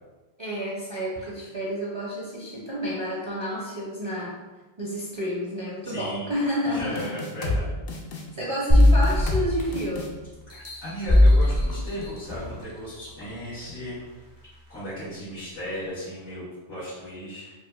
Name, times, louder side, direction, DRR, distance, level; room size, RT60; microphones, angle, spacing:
voice 1, 0.4-4.3 4.8-7.1 8.3-10.2, equal, 35° right, -6 dB, 0.5 m, -30 dB
voice 2, 5.8-6.3 6.6-7.7 10.5-14.0 14.7-17.5, equal, 85° left, -15 dB, 1.9 m, -36 dB
sound 1, 7.0-7.6 7.9-8.2 8.8-9.5 9.7-10.1, left 3 dB, 60° left, 0.7 m, -29 dB
sound 2, 8.7-10.0 10.5-12.6 13.2-13.3, left 1 dB, 25° left, 0.5 m, -19 dB
4.4 x 2.4 x 2.3 m, 1.2 s
omnidirectional pair, 1.1 m